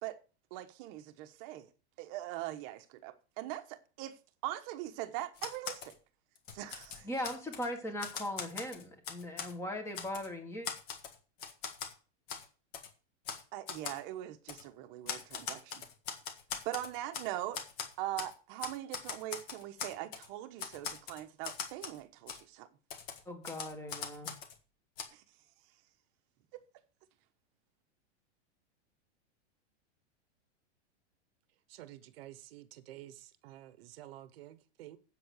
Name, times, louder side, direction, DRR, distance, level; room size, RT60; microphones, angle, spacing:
voice 1, 0.5-1.7 2.0-4.1 4.4-6.0 6.5-7.1 13.5-15.8 16.6-17.6 18.0-22.7 25.1-25.2, right 14 dB, 30° right, 1.2 m, -41 dB
Typewriter, 5.4-5.9 6.4-7.7 8.0-9.5 9.9-10.3 10.6-11.9 12.3-12.4 12.7-12.9 13.2-13.4 13.7-14.0 14.5-14.6 15.1-17.3 17.5-18.3 18.6-20.3 20.6-22.0 22.3-22.4 22.9-24.6 25.0-25.1, left 7 dB, 30° left, 1.7 m, -41 dB
voice 2, 7.0-10.7 23.2-24.3, left 1 dB, 10° left, 1.6 m, -39 dB
voice 3, 31.7-35.0, right 14 dB, 55° right, 1.1 m, -51 dB
7.9 x 7.8 x 6.5 m
supercardioid pair, 170°, 34 cm